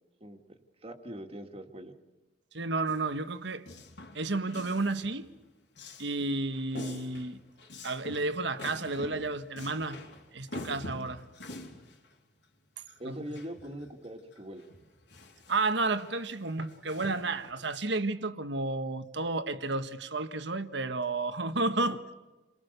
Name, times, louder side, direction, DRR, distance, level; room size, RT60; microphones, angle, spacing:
voice 1, 0.8-1.9 13.0-14.6, equal, 30° right, 2.2 m, -42 dB
voice 2, 2.5-3.6 4.1-5.3 6.0-7.4 7.8-10.0 10.3-11.2 13.0-13.2 15.5-22.0, right 3 dB, 65° right, 1.5 m, -31 dB
Male speech man speaking, 2.9-5.3 5.8-13.8 14.3-17.5, left 2 dB, 60° left, 3.7 m, -46 dB
29.5 x 23.0 x 6.8 m
head